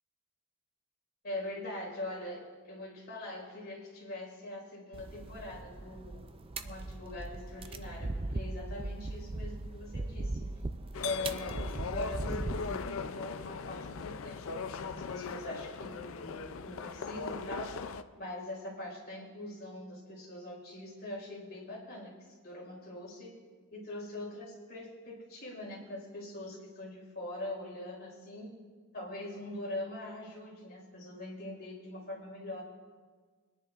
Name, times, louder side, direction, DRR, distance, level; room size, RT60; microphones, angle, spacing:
voice 1, 1.2-6.3 6.6-10.5 11.0-16.4 16.6-17.9 18.2-22.2 22.4-23.3 23.7-28.6 28.9-32.6, left 2 dB, 45° left, -3 dB, 4.7 m, -42 dB
sound 1, 4.9-12.8, right 2 dB, 25° right, 0.4 m, -39 dB
sound 2, 10.9-18.0, left 5 dB, 65° left, 0.5 m, -39 dB
26.0 x 10.5 x 2.5 m, 1.5 s
head